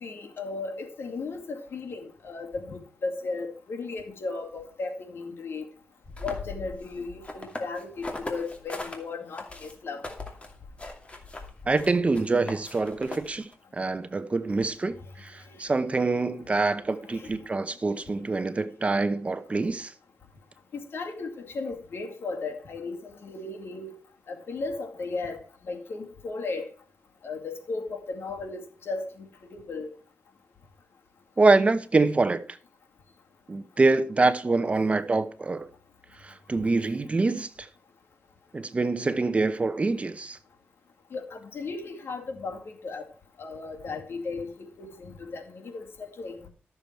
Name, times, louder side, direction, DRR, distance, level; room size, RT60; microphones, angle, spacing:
voice 1, 0.0-5.7 6.2-10.1 15.5-15.6 17.1-17.3 20.7-24.0 24.3-26.7 27.2-29.3 29.5-29.9 41.1-43.1 43.4-46.5, left 3 dB, 70° left, 2.2 m, -36 dB
sound 1, 6.0-9.0 9.3-13.5, left 2 dB, 30° left, 2.6 m, -39 dB
voice 2, 11.7-19.9 31.4-32.4 33.5-35.7 36.2-37.7 38.5-40.4, right 3 dB, 30° right, 0.8 m, -25 dB
13.0 x 7.0 x 4.5 m
cardioid pair, 95°, 4 cm